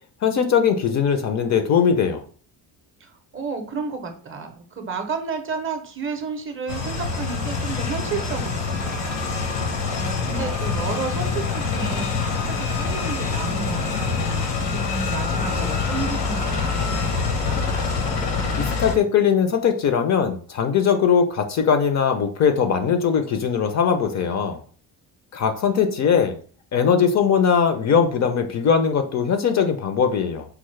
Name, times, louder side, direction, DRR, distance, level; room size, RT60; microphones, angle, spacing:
voice 1, 0.2-2.2 18.6-24.6 25.3-26.4 26.7-30.5, left 7 dB, 45° left, 8 dB, 0.4 m, -20 dB
voice 2, 3.0-9.2 9.6-14.4 14.7-17.6, right 5 dB, 30° right, 5 dB, 0.5 m, -32 dB
sound 1, 6.7-18.9, left 4 dB, 85° left, 1.0 m, -25 dB
4.6 x 2.0 x 3.1 m, 0.44 s
cardioid pair, 120°, 41 cm